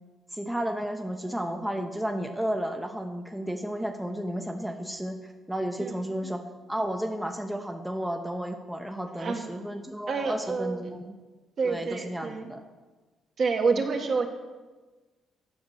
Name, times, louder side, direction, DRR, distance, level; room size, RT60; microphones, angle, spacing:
voice 1, 0.3-6.4 6.7-11.1 11.6-12.6, equal, 5° right, 4 dB, 0.7 m, -32 dB
voice 2, 9.2-9.6 10.1-10.9 11.6-12.5 13.4-14.3, right 4 dB, 55° right, 3 dB, 1.4 m, -28 dB
7.8 x 5.9 x 7.0 m, 1.3 s
cardioid pair, 90°, 0 cm